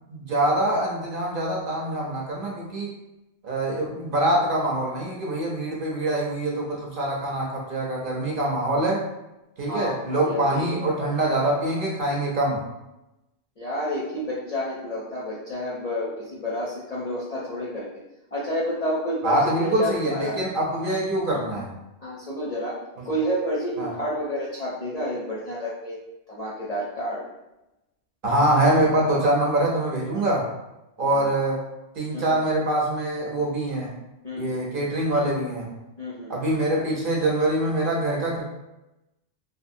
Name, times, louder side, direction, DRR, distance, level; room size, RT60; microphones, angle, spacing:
voice 1, 0.1-2.9 3.4-9.0 9.6-12.6 19.2-21.7 23.0-23.1 23.8-23.9 28.2-30.5 31.0-31.6 32.0-33.9 34.3-35.7 36.3-38.4, right 1 dB, 55° right, -2 dB, 0.7 m, -24 dB
voice 2, 9.7-11.1 13.6-18.0 18.3-20.4 22.0-22.7 23.1-26.0 26.3-27.3 31.1-31.3 32.1-32.3 34.2-34.6 36.0-36.3, equal, 50° left, -7 dB, 0.5 m, -30 dB
2.6 x 2.6 x 2.5 m, 0.95 s
omnidirectional pair, 1.2 m